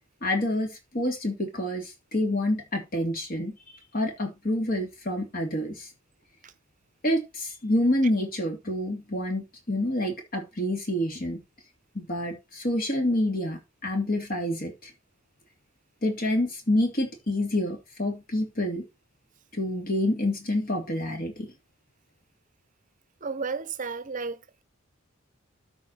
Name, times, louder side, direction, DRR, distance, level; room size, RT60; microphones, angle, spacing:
voice 1, 0.2-3.6 3.9-5.9 7.0-11.4 11.9-14.9 16.0-18.8 19.5-21.5, left 1 dB, 45° left, 2.7 m, -28 dB
voice 2, 23.2-24.6, right 4 dB, 40° right, 0.8 m, -33 dB
12.5 x 4.9 x 4.2 m
head